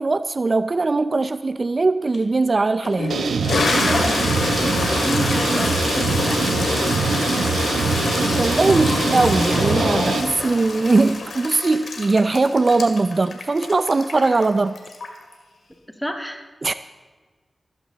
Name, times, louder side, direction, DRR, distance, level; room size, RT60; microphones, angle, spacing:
voice 1, 0.0-3.2 8.3-14.8 16.6-16.7, right 3 dB, 50° right, 0.4 m, -20 dB
Toilet flush, 2.1-2.2 2.8-15.3, left 3 dB, 80° left, 2.2 m, -25 dB
sound 1, 3.1-10.2, right 4 dB, 90° right, 0.9 m, -23 dB
voice 2, 3.8-7.5 16.0-16.5, equal, 5° left, 2.2 m, -32 dB
15.0 x 14.0 x 4.1 m
cardioid pair, 45°, 0 cm